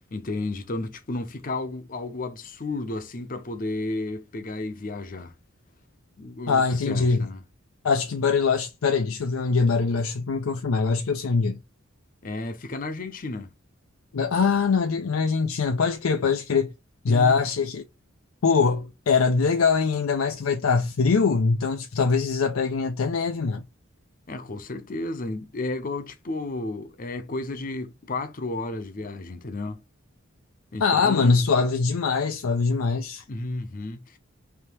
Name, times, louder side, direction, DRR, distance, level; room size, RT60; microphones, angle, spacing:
voice 1, 0.1-5.3 6.2-7.4 12.2-13.5 17.1-17.4 24.3-29.8 30.7-31.4 33.3-34.2, left 2 dB, 40° left, 0.6 m, -32 dB
voice 2, 6.5-7.3 7.8-11.6 14.1-16.7 17.0-17.8 18.4-23.6 30.8-33.2, left 5 dB, 90° left, 0.5 m, -23 dB
3.5 x 2.8 x 4.4 m
head